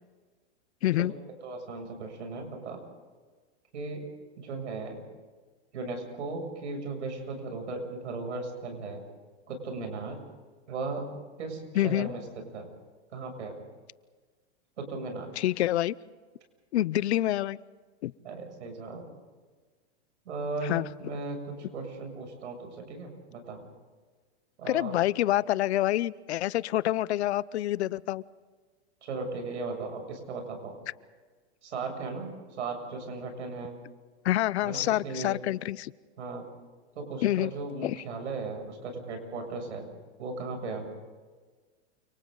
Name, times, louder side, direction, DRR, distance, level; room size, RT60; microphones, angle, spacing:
voice 1, 0.8-1.1 11.8-12.1 15.4-16.0 16.7-17.6 18.0-18.1 20.6-20.8 24.7-28.2 34.2-35.9 37.2-37.5 37.8-38.0, left 14 dB, 70° left, 20 dB, 0.8 m, -27 dB
voice 2, 1.4-2.8 3.7-4.1 4.4-5.0 5.7-9.0 9.5-10.2 10.7-11.1 11.4-12.7 13.1-13.6 14.8-15.3 18.2-19.1 20.3-23.6 24.6-25.0 29.0-30.8 31.6-32.3 32.6-33.8 34.6-35.3 36.2-36.5 37.0-39.9 40.2-40.9, right 3 dB, 90° right, 4 dB, 7.4 m, -37 dB
29.5 x 26.5 x 4.0 m, 1.4 s
supercardioid pair, 150°, 34 cm